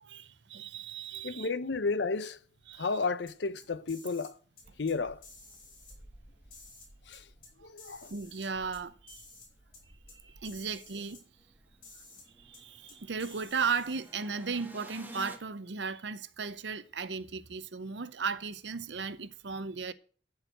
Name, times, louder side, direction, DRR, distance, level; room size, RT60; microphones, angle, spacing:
voice 1, 0.0-1.5 2.7-2.9 7.6-7.7 8.1-9.2 10.2-11.2 12.4-19.9, right 5 dB, 75° right, 0.7 m, -36 dB
voice 2, 1.2-2.4 2.7-4.4 4.8-5.2 7.1-7.3 7.6-8.1, left 4 dB, 70° left, 0.7 m, -32 dB
sound 1, 3.3-4.3 4.6-4.9 5.2-6.0 6.5-7.5 7.8-8.8 9.1-9.5 9.7-9.8 10.1-10.2 10.4-11.2 11.8-12.3 12.5-12.6 12.9-14.2, left 3 dB, 50° left, 5.8 m, -53 dB
sound 2, 4.6-15.4, right 1 dB, 10° right, 1.4 m, -54 dB
13.5 x 4.8 x 7.6 m
head